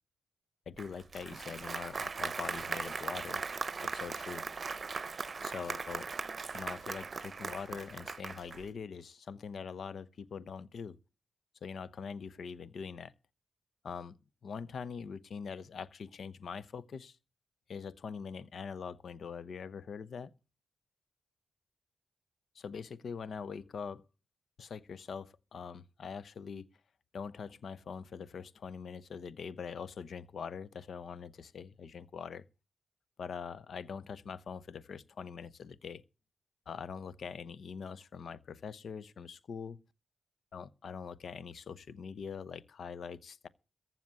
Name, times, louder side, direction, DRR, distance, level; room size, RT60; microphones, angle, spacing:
voice 1, 0.7-3.4 3.8-4.4 5.4-6.1 6.5-11.0 11.6-13.1 13.8-14.2 14.4-17.2 17.7-20.3 22.5-24.0 24.6-26.7 27.1-32.4 33.2-36.0 36.7-39.8 40.5-43.5, left 6 dB, 70° left, 0.9 m, -43 dB
Applause, 0.8-8.7, right 4 dB, 50° right, 0.7 m, -39 dB
14.5 x 6.0 x 9.6 m
supercardioid pair, 50°, 0 cm